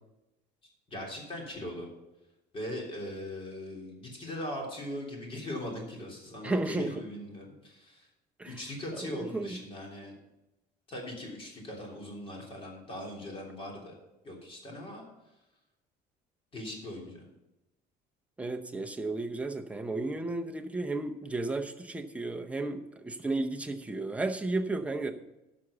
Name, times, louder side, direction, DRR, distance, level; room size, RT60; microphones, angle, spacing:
voice 1, 0.9-1.9 2.5-8.1 8.5-10.1 10.9-14.0 14.2-15.1 16.5-17.3, left 1 dB, 30° left, -1 dB, 3.3 m, -40 dB
voice 2, 6.4-7.0 8.4-8.6 9.0-9.6 18.4-25.1, right 2 dB, 5° right, 4 dB, 0.8 m, -33 dB
11.5 x 6.2 x 6.8 m, 0.95 s
cardioid pair, 150°, 18 cm